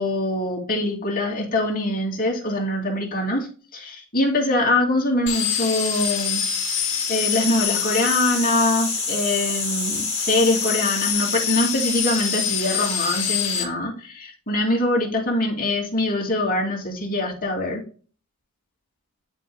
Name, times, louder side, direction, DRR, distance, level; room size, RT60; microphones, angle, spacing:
voice 1, 0.0-3.5 3.7-6.5 7.1-17.8, left 1 dB, 40° left, 0 dB, 2.4 m, -23 dB
sound 1, 5.3-13.6, left 7 dB, 60° left, 2.0 m, -25 dB
12.0 x 4.9 x 2.2 m, 0.38 s
head